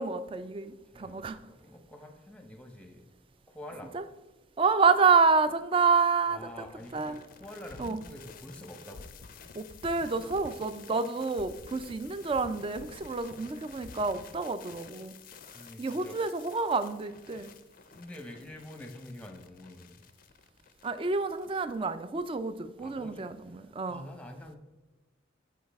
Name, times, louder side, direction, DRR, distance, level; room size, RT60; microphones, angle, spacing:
voice 1, 0.0-1.4 3.9-4.0 4.6-6.5 6.9-7.2 7.8-8.0 9.5-15.2 15.8-17.5 20.8-24.1, right 4 dB, 25° right, 12 dB, 0.3 m, -28 dB
voice 2, 0.9-3.0 3.5-3.9 6.3-9.1 15.5-16.2 17.9-20.1 22.8-23.3 23.9-24.6, left 1 dB, 5° left, 5 dB, 0.7 m, -46 dB
sound 1, 6.5-21.8, left 5 dB, 45° left, 0.4 m, -51 dB
8.4 x 4.7 x 3.4 m, 1.2 s
head